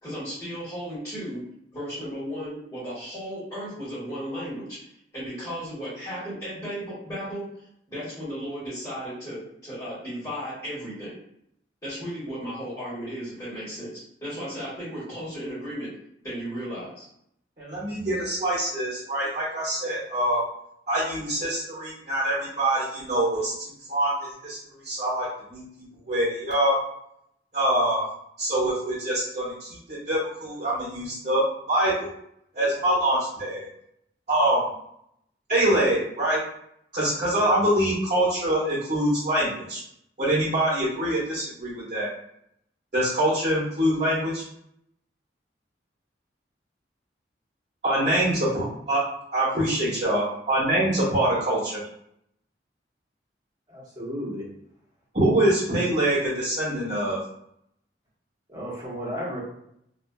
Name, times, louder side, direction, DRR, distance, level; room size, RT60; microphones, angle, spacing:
voice 1, 0.0-1.4 1.7-4.8 5.1-11.2 11.8-15.9 16.2-17.0 48.0-48.1, equal, 25° left, -12 dB, 1.3 m, -35 dB
voice 2, 17.6-20.4 20.9-23.5 23.9-24.6 24.8-25.6 26.1-26.7 27.5-28.1 28.4-31.4 31.7-32.1 32.5-33.7 34.3-34.7 35.5-36.4 36.9-39.8 40.2-42.1 42.9-44.4 47.8-49.0 49.3-51.8 55.1-57.2, right 1 dB, 45° right, -9 dB, 0.9 m, -24 dB
voice 3, 53.7-54.4 58.5-59.4, equal, 20° right, -8 dB, 1.1 m, -33 dB
2.4 x 2.4 x 2.2 m, 0.74 s
head